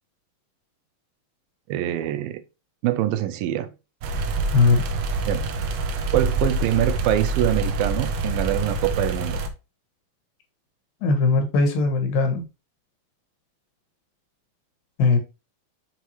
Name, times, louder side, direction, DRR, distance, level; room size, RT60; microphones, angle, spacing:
voice 1, 1.7-2.4 2.8-3.7 5.3-5.5 6.1-9.4, right 13 dB, 90° right, 2.4 m, -24 dB
sound 1, 4.0-9.5, right 3 dB, 75° right, 2.1 m, -26 dB
voice 2, 11.0-12.4 15.0-15.2, left 3 dB, 75° left, 3.1 m, -19 dB
6.9 x 4.6 x 3.1 m
omnidirectional pair, 4.2 m